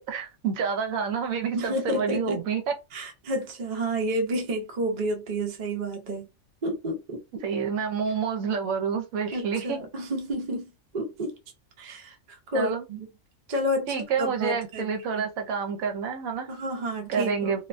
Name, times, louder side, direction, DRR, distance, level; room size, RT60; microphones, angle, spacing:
voice 1, 0.0-2.7 7.4-9.8 12.5-12.8 13.9-16.5 17.1-17.7, right 6 dB, 75° right, 1.0 m, -28 dB
voice 2, 1.5-2.4 2.9-6.3 6.6-7.2 9.3-11.4 11.8-12.1 12.5-13.1 13.5-14.9 15.2-15.3 16.5-17.5, right 1 dB, 45° right, 0.6 m, -30 dB
2.5 x 2.1 x 2.5 m
omnidirectional pair, 1.5 m